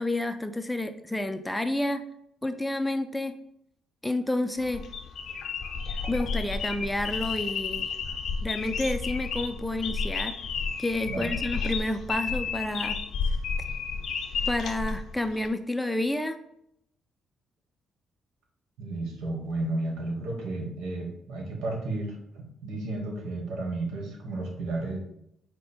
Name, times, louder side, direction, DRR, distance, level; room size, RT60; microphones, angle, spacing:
voice 1, 0.0-2.0 2.4-3.3 4.0-4.8 6.1-7.9 8.4-10.3 10.8-13.0 14.5-16.4, left 1 dB, 10° left, 8 dB, 0.4 m, -29 dB
sound 1, 4.6-15.5, left 5 dB, 70° left, 0.6 m, -32 dB
voice 2, 18.8-25.0, right 2 dB, 85° right, 1 dB, 1.3 m, -33 dB
5.0 x 2.2 x 4.3 m, 0.75 s
cardioid pair, 90°, 0 cm